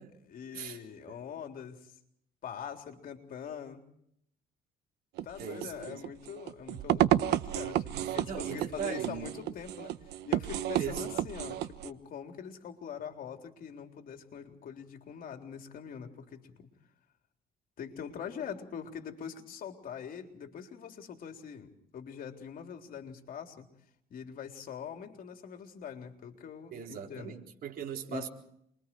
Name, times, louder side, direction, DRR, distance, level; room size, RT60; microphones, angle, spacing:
voice 1, 0.3-1.9 2.4-3.8 5.2-9.9 10.3-16.7 17.8-23.7 24.1-27.4 28.1-28.3, left 7 dB, 55° left, 3.8 m, -43 dB
sound 1, 5.2-11.9, right 13 dB, 80° right, 1.2 m, -31 dB
voice 2, 5.4-6.0 7.9-9.3 10.8-11.2 26.7-28.3, right 8 dB, 60° right, 4.3 m, -39 dB
28.5 x 23.0 x 4.7 m
cardioid pair, 110°, 17 cm